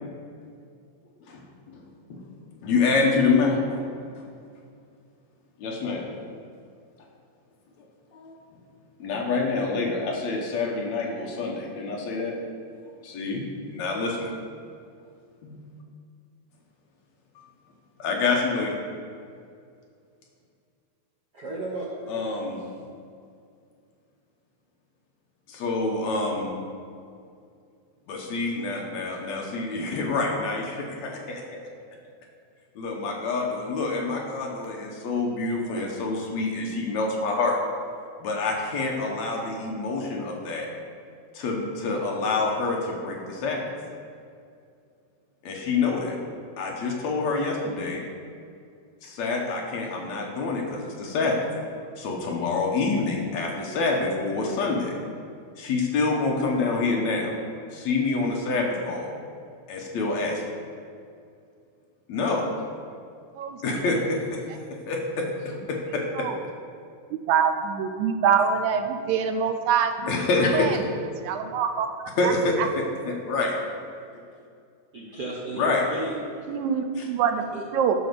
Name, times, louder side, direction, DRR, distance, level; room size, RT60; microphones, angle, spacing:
voice 1, 2.6-3.8 5.6-6.1 8.1-8.3 9.0-12.4 13.0-13.4 13.7-14.3 15.4-15.6 18.0-18.8 22.1-22.9 25.5-26.5 28.1-31.4 32.8-37.6 38.2-40.7 41.3-43.6 45.4-46.2 46.6-48.0 49.0-51.4 52.0-54.9 55.6-57.4 57.7-59.1 59.7-60.4 62.1-62.4 63.6-64.4 64.7-66.3 70.1-70.8 72.2-72.5 73.1-73.5 75.5-75.8, left 3 dB, 70° left, -1 dB, 2.4 m, -27 dB
voice 2, 21.3-22.7 74.9-76.5 77.5-77.6, right 2 dB, 60° right, -5 dB, 1.1 m, -35 dB
voice 3, 63.4-63.9 66.2-66.4 67.3-69.9 70.5-70.8 71.2-71.9 72.2-72.3 72.6-72.7 76.5-77.4 77.7-78.0, right 7 dB, 80° right, 7 dB, 1.9 m, -24 dB
9.8 x 5.4 x 6.8 m, 2.4 s
omnidirectional pair, 3.5 m